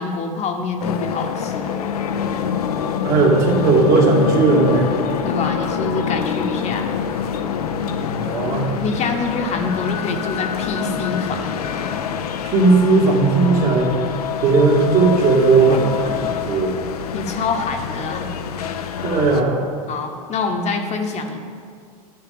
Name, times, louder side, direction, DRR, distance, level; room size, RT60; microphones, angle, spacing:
voice 1, 0.0-1.7 5.2-6.9 8.8-11.7 17.1-18.3 19.9-21.4, left 4 dB, 35° left, 4 dB, 1.0 m, -25 dB
sound 1, 0.8-19.4, left 7 dB, 90° left, 0.6 m, -25 dB
voice 2, 3.0-4.9 8.1-8.7 12.4-14.0 14.4-16.7 19.0-19.6, right 3 dB, 50° right, -2 dB, 2.3 m, -16 dB
10.5 x 6.5 x 5.2 m, 2.2 s
hypercardioid pair, 100°, 19 cm